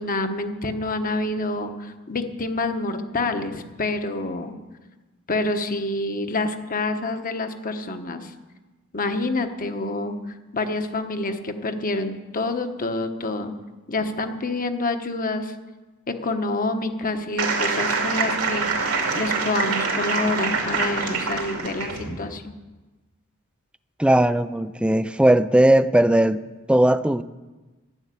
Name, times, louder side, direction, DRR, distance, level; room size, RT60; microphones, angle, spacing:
voice 1, 0.0-4.5 5.3-8.3 8.9-10.2 10.5-13.5 13.9-15.5 16.1-22.5, left 2 dB, 40° left, 7 dB, 1.2 m, -27 dB
sound 1, 17.4-22.1, right 4 dB, 80° right, 2.8 m, -25 dB
voice 2, 24.0-27.2, right 1 dB, 5° right, 12 dB, 0.4 m, -18 dB
12.0 x 10.5 x 8.3 m, 1.2 s
head